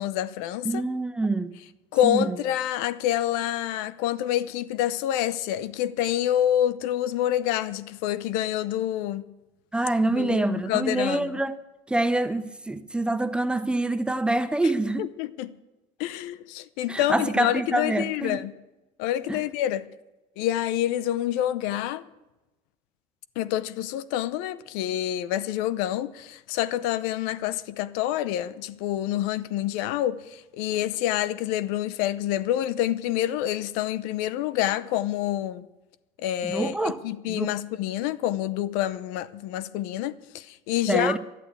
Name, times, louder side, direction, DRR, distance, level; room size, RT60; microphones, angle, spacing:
voice 1, 0.0-0.8 1.9-9.2 10.1-11.3 15.0-15.5 16.0-18.5 19.0-19.8 20.4-22.0 23.4-35.7 36.2-41.2, left 12 dB, 75° left, 0.7 m, -27 dB
voice 2, 0.6-1.6 2.0-2.4 9.7-11.6 11.9-15.1 16.9-18.4 19.3-19.4 36.4-37.0 37.3-37.5 40.9-41.2, right 2 dB, 5° right, 0.6 m, -26 dB
12.0 x 11.0 x 8.2 m
cardioid pair, 135°, 15 cm